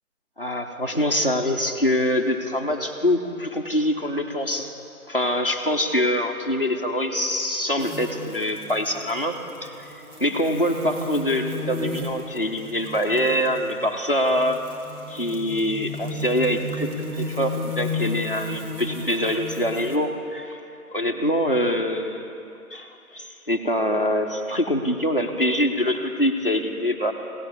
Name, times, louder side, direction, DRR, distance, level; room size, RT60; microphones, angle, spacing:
voice 1, 0.4-4.7 5.1-9.9 10.2-14.6 15.1-20.6 20.9-22.4 22.7-27.1, equal, 40° left, 1 dB, 0.7 m, -24 dB
sound 1, 7.8-20.0, left 2 dB, 70° right, 1.8 m, -34 dB
16.5 x 7.5 x 5.4 m, 2.8 s
figure-of-eight pair, 175°, 45 cm